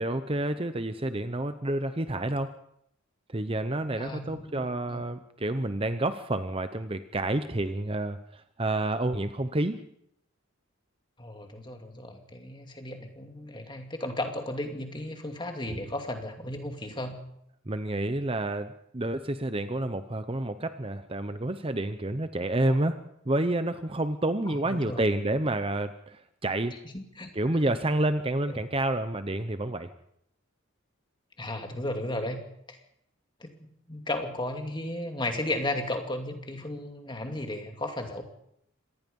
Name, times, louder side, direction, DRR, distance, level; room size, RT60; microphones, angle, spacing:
voice 1, 0.0-2.5 3.3-9.8 17.7-23.0 23.2-26.8 27.3-29.9, right 1 dB, 25° right, 10 dB, 0.8 m, -29 dB
voice 2, 4.0-5.0 11.2-17.2 22.7-22.9 24.5-25.0 26.8-27.3 28.5-28.6 31.4-32.4 32.7-32.8 33.4-38.2, left 1 dB, 20° left, 4 dB, 2.5 m, -35 dB
26.0 x 19.0 x 5.4 m, 0.74 s
head